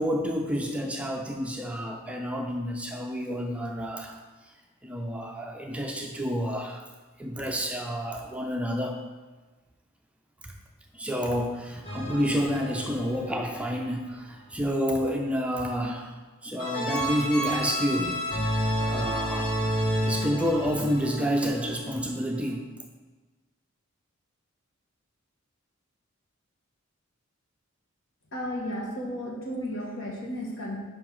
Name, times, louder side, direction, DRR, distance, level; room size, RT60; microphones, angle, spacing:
voice 1, 0.0-4.2 4.4-4.5 4.8-6.9 7.2-9.0 10.4-10.5 10.9-18.4 18.8-19.5 20.1-22.7, equal, 5° right, 2 dB, 0.4 m, -29 dB
sound 1, 11.8-13.9 16.6-22.1, equal, 25° left, 1.7 m, -30 dB
voice 2, 28.3-30.8, equal, 70° left, -2 dB, 1.5 m, -33 dB
5.4 x 4.7 x 5.5 m, 1.3 s
head